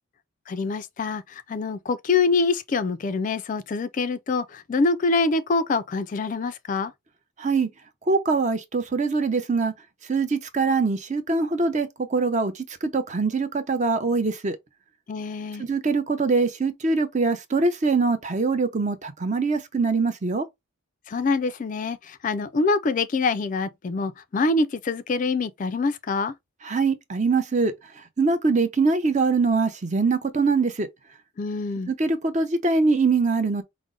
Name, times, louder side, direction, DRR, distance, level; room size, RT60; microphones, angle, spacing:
voice 1, 0.5-6.9 15.1-15.6 21.1-26.3 31.4-31.9, left 3 dB, 40° left, 0.3 m, -25 dB
voice 2, 7.4-7.7 8.1-9.7 10.1-14.6 15.6-20.5 26.6-30.9 31.9-33.6, right 4 dB, 35° right, 0.6 m, -23 dB
5.1 x 2.1 x 3.7 m
head